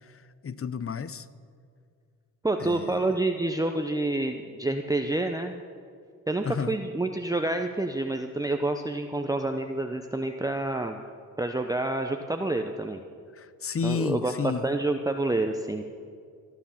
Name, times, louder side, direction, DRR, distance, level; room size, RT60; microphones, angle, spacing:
voice 1, 0.0-1.3 2.6-3.1 6.4-6.8 13.3-14.7, left 6 dB, 40° left, 15 dB, 0.7 m, -32 dB
voice 2, 2.4-5.6 6.3-11.0 11.4-13.0 13.8-15.8, right 2 dB, 10° right, 5 dB, 0.8 m, -28 dB
15.5 x 10.0 x 7.3 m, 2.2 s
cardioid pair, 60°, 37 cm